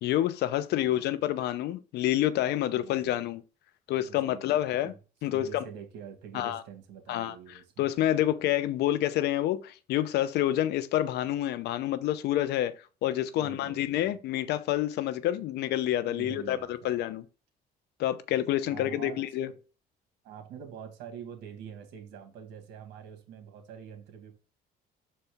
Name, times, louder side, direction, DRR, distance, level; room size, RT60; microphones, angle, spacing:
voice 1, 0.0-3.4 3.9-4.9 5.2-5.6 6.3-6.6 7.1-7.4 7.8-12.7 13.0-17.2 18.0-19.5, left 13 dB, 75° left, 0.7 m, -28 dB
voice 2, 0.8-1.1 2.7-3.2 3.9-4.9 5.3-7.9 13.4-14.1 15.3-15.4 16.0-17.0 18.7-19.5 20.2-24.3, right 8 dB, 90° right, 1.8 m, -45 dB
6.7 x 4.3 x 3.5 m
cardioid pair, 110°, 17 cm